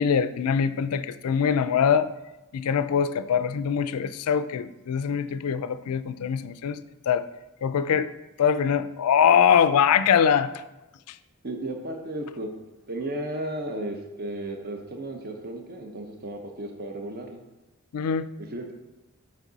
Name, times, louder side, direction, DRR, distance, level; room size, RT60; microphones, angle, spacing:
voice 1, 0.0-2.1 2.5-7.2 7.6-8.1 8.4-10.5 17.9-18.3, left 7 dB, 75° left, 13 dB, 0.4 m, -23 dB
voice 2, 11.4-12.5 12.9-17.4 18.4-18.7, right 1 dB, 45° right, 3 dB, 0.7 m, -34 dB
7.4 x 4.6 x 4.0 m, 1.0 s
head